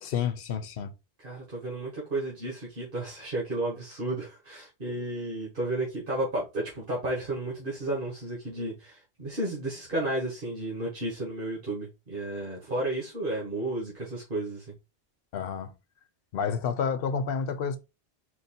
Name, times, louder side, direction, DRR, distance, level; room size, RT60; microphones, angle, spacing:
voice 1, 0.0-0.9 15.3-15.7 16.3-17.8, left 6 dB, 70° left, 0.9 m, -30 dB
voice 2, 1.2-14.7, right 1 dB, 60° right, 1.8 m, -32 dB
4.5 x 2.7 x 4.2 m
omnidirectional pair, 1.0 m